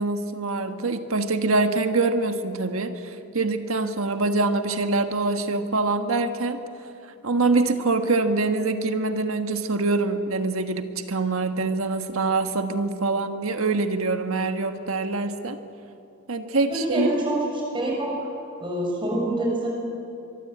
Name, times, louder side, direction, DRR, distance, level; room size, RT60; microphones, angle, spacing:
voice 1, 0.0-6.6 7.2-15.6 16.3-17.1, right 3 dB, 70° right, 7 dB, 1.5 m, -24 dB
voice 2, 16.7-17.3 17.7-18.1 18.6-19.7, right 1 dB, 25° right, -2 dB, 7.0 m, -26 dB
23.5 x 23.0 x 8.7 m, 2.7 s
head